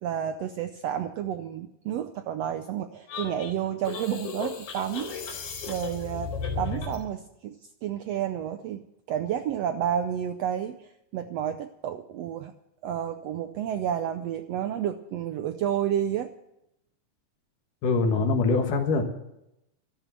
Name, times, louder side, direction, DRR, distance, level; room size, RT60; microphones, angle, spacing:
voice 1, 0.0-7.6 7.8-12.5 12.8-16.3, right 10 dB, 75° right, 9 dB, 1.5 m, -31 dB
sound 1, 3.1-7.1, left 5 dB, 70° left, 4.2 m, -35 dB
voice 2, 17.8-19.0, left 3 dB, 90° left, 3 dB, 3.1 m, -23 dB
13.5 x 12.5 x 7.7 m, 0.84 s
omnidirectional pair, 3.6 m